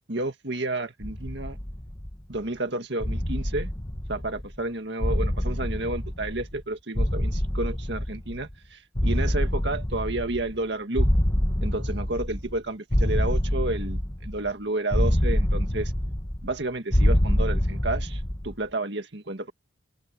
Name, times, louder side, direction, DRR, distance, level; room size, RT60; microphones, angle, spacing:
voice 1, 0.1-1.6 2.3-3.7 4.1-11.1 11.6-15.9 16.4-19.5, right 2 dB, 60° right, 2.0 m, -31 dB
sound 1, 1.0-2.4 3.0-4.6 5.0-6.6 7.0-8.5 9.0-10.6 11.0-12.6 12.9-14.5 14.9-16.6 16.9-18.5, equal, 20° left, 1.4 m, -26 dB
head